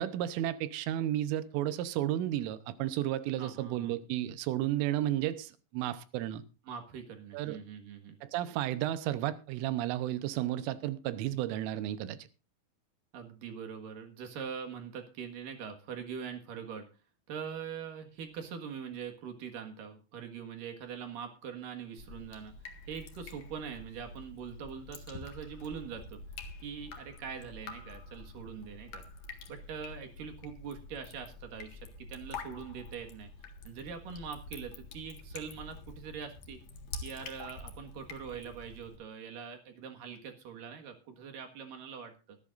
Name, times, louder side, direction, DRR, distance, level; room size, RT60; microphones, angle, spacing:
voice 1, 0.0-6.4 7.3-7.6 8.2-12.2, right 13 dB, 80° right, 3.3 m, -33 dB
voice 2, 3.4-3.9 6.7-8.2 13.1-16.9 17.3-22.5 22.9-26.2 26.6-29.0 29.5-33.3 33.6-36.6 37.0-42.4, right 7 dB, 60° right, 2.5 m, -43 dB
Drip, 22.0-39.0, left 3 dB, 65° left, 1.7 m, -47 dB
23.0 x 11.0 x 2.5 m
omnidirectional pair, 5.9 m